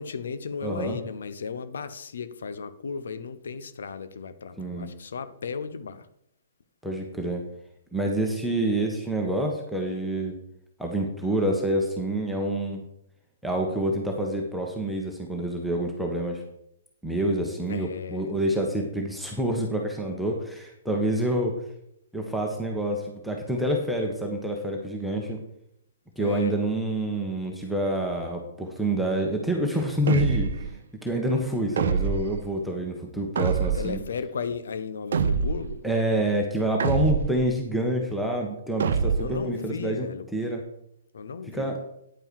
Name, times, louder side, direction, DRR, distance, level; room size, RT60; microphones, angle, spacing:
voice 1, 0.0-6.1 17.7-18.3 26.2-26.6 33.7-35.8 39.2-40.3 41.1-41.7, left 5 dB, 60° left, 12 dB, 1.0 m, -35 dB
voice 2, 0.6-1.0 4.6-4.9 6.8-7.4 7.9-10.3 10.8-12.8 13.4-16.4 17.0-21.5 22.1-25.4 26.2-30.5 31.0-34.0 35.8-40.6 41.5-41.8, right 1 dB, ahead, 0 dB, 1.5 m, -27 dB
sound 1, 30.1-30.7 31.8-32.4 33.4-34.0 35.1-35.8 36.8-37.5 38.8-39.4, right 6 dB, 55° right, 0.7 m, -25 dB
10.0 x 8.7 x 4.7 m, 0.76 s
figure-of-eight pair, 120°, 0 cm